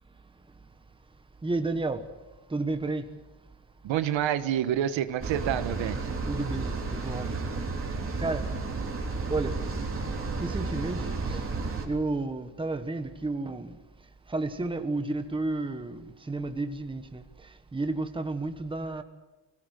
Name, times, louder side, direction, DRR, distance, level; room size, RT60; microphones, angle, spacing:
voice 1, 1.4-2.1 2.5-3.1 6.3-7.5 8.2-8.5 9.3-9.6 10.4-11.5 11.8-13.8 14.3-19.0, right 2 dB, 10° right, 1.3 m, -32 dB
voice 2, 3.8-6.1, right 10 dB, 90° right, 1.4 m, -28 dB
sound 1, 5.2-11.9, right 3 dB, 30° right, 3.4 m, -32 dB
25.5 x 17.0 x 8.2 m
cardioid pair, 160°, 44 cm